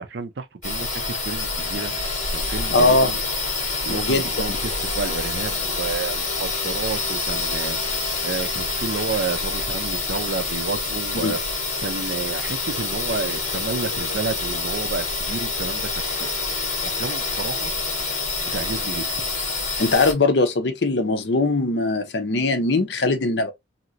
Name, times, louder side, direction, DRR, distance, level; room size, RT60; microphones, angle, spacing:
voice 1, 0.0-2.0 2.3-3.2 3.8-11.4 11.8-16.4 16.8-17.7 18.4-19.3, right 4 dB, 60° right, 0.5 m, -31 dB
sound 1, 0.6-20.1, left 3 dB, 40° left, 1.7 m, -27 dB
voice 2, 2.7-3.1 3.9-4.6 11.2-11.3 19.8-23.5, left 3 dB, 60° left, 0.7 m, -21 dB
3.0 x 2.8 x 2.5 m
head